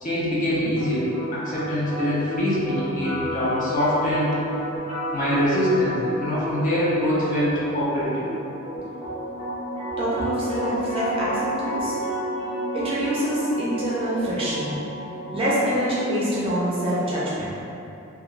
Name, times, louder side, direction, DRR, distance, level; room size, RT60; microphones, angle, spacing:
voice 1, 0.0-4.4 5.1-8.3, equal, 35° left, -7 dB, 0.5 m, -24 dB
sound 1, 0.8-16.8, right 1 dB, 15° left, 0.8 m, -32 dB
voice 2, 10.0-12.0 12.7-14.8 15.3-17.5, equal, 25° right, -8 dB, 0.5 m, -25 dB
2.3 x 2.3 x 3.1 m, 2.8 s
head